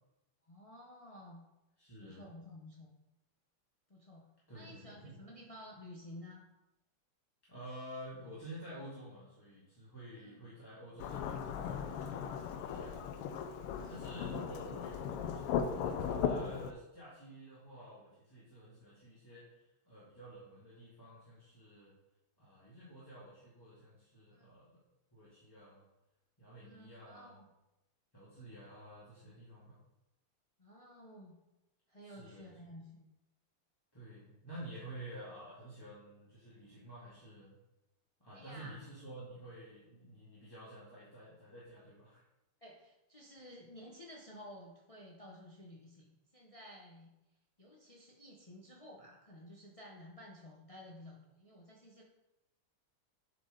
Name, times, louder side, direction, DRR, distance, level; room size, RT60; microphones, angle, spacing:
voice 1, 0.4-1.4 2.0-2.9 3.9-4.3 4.5-6.4 10.1-10.5 13.7-14.1 24.3-24.5 26.6-27.5 30.6-31.4 31.9-33.1 38.3-38.9 42.6-46.1 46.3-47.1 47.6-52.0, left 1 dB, 45° left, -2 dB, 0.4 m, -53 dB
voice 2, 1.8-2.3 4.5-5.2 7.5-13.0 13.6-21.9 22.4-24.8 25.1-25.8 26.4-27.4 28.1-29.8 32.0-32.5 33.9-37.6 38.2-42.2, right 1 dB, 10° left, -9 dB, 1.8 m, -51 dB
Thunderstorm / Rain, 11.0-16.7, left 7 dB, 85° left, 1.6 m, -37 dB
7.9 x 5.3 x 5.0 m, 0.95 s
omnidirectional pair, 2.4 m